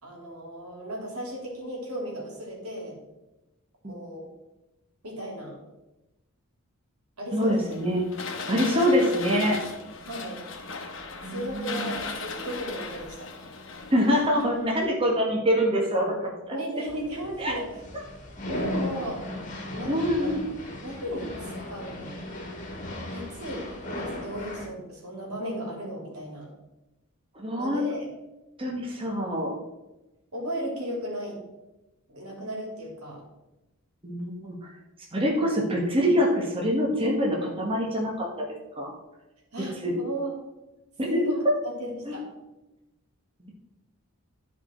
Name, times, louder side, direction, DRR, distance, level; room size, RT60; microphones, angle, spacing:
voice 1, 0.0-2.9 3.8-4.3 5.0-5.6 7.2-7.8 8.7-9.2 10.0-10.4 11.3-13.3 16.5-17.7 18.5-19.2 19.7-20.6 20.8-22.2 23.1-23.7 23.9-26.5 27.6-28.1 30.3-31.4 32.1-33.2 39.5-40.4 41.0-41.4 41.8-42.2, right 1 dB, 85° right, -1 dB, 2.8 m, -35 dB
voice 2, 7.3-8.1 8.5-9.6 11.2-11.9 13.9-16.3 17.4-17.6 19.9-20.4 27.3-27.9 28.6-29.5 34.0-34.7 35.1-38.5 38.8-38.9 39.8-39.9 41.0-41.2 42.1-42.2 43.4-43.5, equal, 25° right, -1 dB, 1.3 m, -25 dB
sound 1, 7.4-15.0, left 4 dB, 60° left, 1.1 m, -38 dB
sound 2, 16.9-24.7, left 1 dB, 35° left, 1.7 m, -36 dB
11.5 x 4.8 x 4.4 m, 1.0 s
head